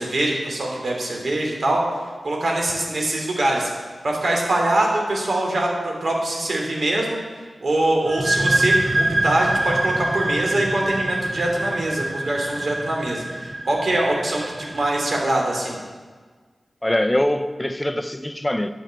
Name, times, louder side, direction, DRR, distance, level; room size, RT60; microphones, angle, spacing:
voice 1, 0.0-1.8 2.2-3.7 4.0-7.2 7.6-15.8, right 1 dB, 65° right, 2.9 m, -23 dB
sound 1, 8.0-15.5, right 1 dB, 30° right, 0.8 m, -25 dB
voice 2, 16.8-18.7, left 1 dB, 15° left, 0.7 m, -23 dB
9.7 x 6.2 x 8.3 m
cardioid pair, 50°, 0 cm